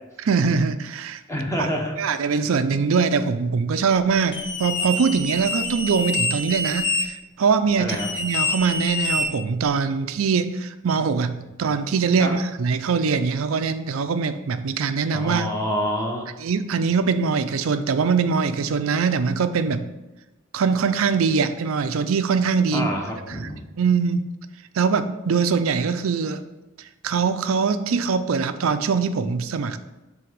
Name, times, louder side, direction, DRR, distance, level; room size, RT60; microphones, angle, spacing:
voice 1, 0.2-1.2 2.0-15.5 16.4-19.9 20.5-22.9 23.4-23.5 23.8-24.3 24.7-26.4 27.0-29.8, right 5 dB, 70° right, 10 dB, 0.5 m, -22 dB
voice 2, 1.3-2.3 7.8-8.1 12.2-12.3 15.1-16.3 22.7-23.6, equal, 15° left, 0 dB, 0.9 m, -27 dB
sound 1, 4.3-7.0 7.9-9.7, left 2 dB, 55° left, 1.6 m, -26 dB
7.7 x 3.5 x 5.2 m, 1.0 s
head